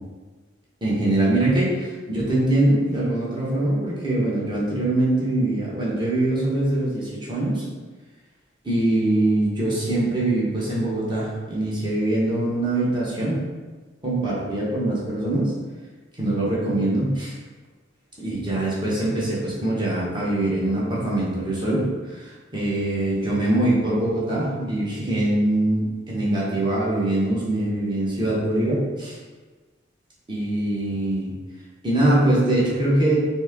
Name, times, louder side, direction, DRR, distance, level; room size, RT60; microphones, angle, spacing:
voice 1, 0.8-7.6 8.6-13.4 14.0-15.5 16.2-17.3 18.2-29.2 30.3-31.3 31.8-33.2, right 1 dB, 25° right, -6 dB, 1.2 m, -23 dB
4.2 x 2.8 x 3.6 m, 1.3 s
head